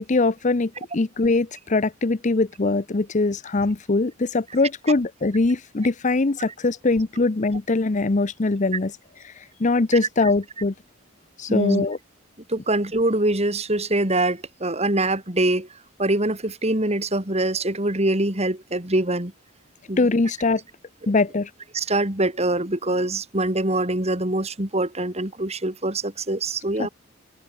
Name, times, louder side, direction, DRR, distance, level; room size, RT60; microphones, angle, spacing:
voice 1, 0.0-8.9 9.2-10.7 11.4-12.0 20.0-20.6 21.1-21.5 26.8-26.9, left 3 dB, 40° left, 0.7 m, -22 dB
voice 2, 11.5-11.9 12.5-15.7 16.0-19.3 19.9-20.0 21.7-26.9, right 2 dB, 30° right, 3.5 m, -24 dB
head